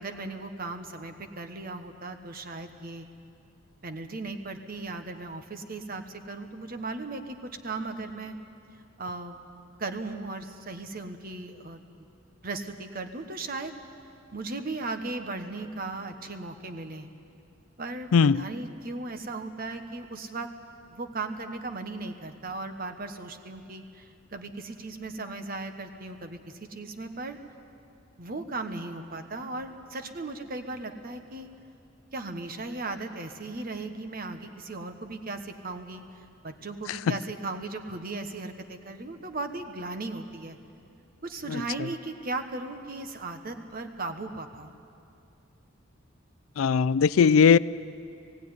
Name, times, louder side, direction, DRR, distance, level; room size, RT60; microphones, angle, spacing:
voice 1, 0.0-3.1 3.8-8.4 9.0-9.4 9.8-11.8 12.4-13.7 14.3-17.1 17.8-20.5 20.9-26.4 26.7-27.4 28.2-31.5 32.1-36.0 36.4-40.6 41.2-44.7, right 3 dB, 45° right, 7 dB, 1.2 m, -37 dB
voice 2, 18.1-18.4 46.6-47.6, left 6 dB, 85° left, 19 dB, 0.4 m, -19 dB
19.0 x 16.0 x 9.6 m, 2.5 s
head